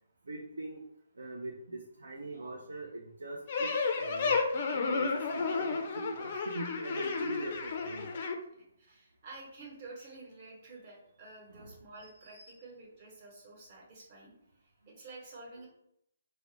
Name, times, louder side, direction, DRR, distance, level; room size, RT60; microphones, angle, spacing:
voice 1, 0.3-0.8 1.2-4.4 4.7-8.1 11.5-12.5, right 2 dB, 75° right, -1 dB, 0.4 m, -42 dB
sound 1, 3.5-8.3, left 4 dB, 45° left, 0.3 m, -32 dB
voice 2, 8.8-14.3 14.9-15.7, right 3 dB, 40° right, -3 dB, 0.9 m, -50 dB
2.4 x 2.0 x 2.6 m, 0.74 s
figure-of-eight pair, 140°, 0 cm